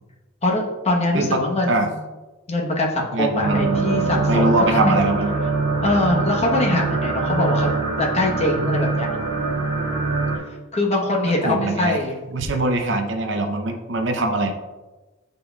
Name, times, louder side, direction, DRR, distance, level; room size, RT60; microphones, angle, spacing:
voice 1, 0.4-2.0 2.5-5.0 5.8-7.7 8.0-9.1 10.7-12.2, left 2 dB, 30° left, -1 dB, 1.0 m, -22 dB
voice 2, 3.1-5.3 11.4-12.0 12.3-14.5, right 2 dB, 55° right, 4 dB, 0.7 m, -22 dB
sound 1, 3.4-10.4, right 3 dB, 90° right, 2.0 m, -23 dB
10.0 x 4.0 x 2.3 m, 1.2 s
head